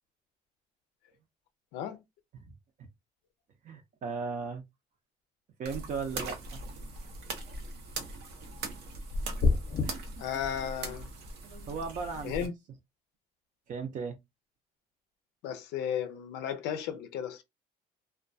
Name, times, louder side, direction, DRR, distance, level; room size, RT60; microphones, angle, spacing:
voice 1, 1.7-2.0 10.2-11.1 12.2-12.5 15.4-17.4, left 9 dB, 90° left, 0.4 m, -34 dB
voice 2, 3.6-4.6 5.6-6.6 11.7-12.3 13.7-14.2, right 5 dB, 50° right, 0.5 m, -36 dB
sound 1, 5.6-12.5, right 2 dB, 85° right, 0.7 m, -40 dB
sound 2, 9.4-9.9, left 4 dB, 40° left, 0.6 m, -25 dB
2.2 x 2.2 x 2.6 m
cardioid pair, 110°, 17 cm